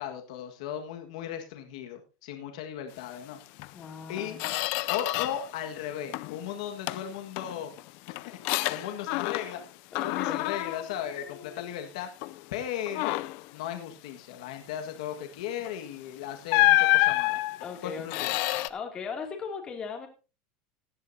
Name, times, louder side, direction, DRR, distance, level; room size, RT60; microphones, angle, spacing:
voice 1, 0.0-3.4 4.1-4.4 4.9-7.7 8.2-8.4 8.7-9.6 10.0-12.1 12.5-13.2 13.5-17.4 17.8-18.4, left 10 dB, 80° left, 5 dB, 1.7 m, -36 dB
Squeak, 3.6-3.7 4.1-5.5 5.8-6.4 6.9-9.7 9.9-11.8 12.2-12.4 12.9-13.5 15.6-15.8 16.5-18.7, left 20 dB, 55° left, 0.5 m, -28 dB
voice 2, 3.7-4.5 9.9-10.5 17.6-18.4 18.7-20.1, left 5 dB, 25° left, 3 dB, 2.6 m, -38 dB
16.5 x 10.5 x 2.8 m, 0.32 s
supercardioid pair, 150°, 4 cm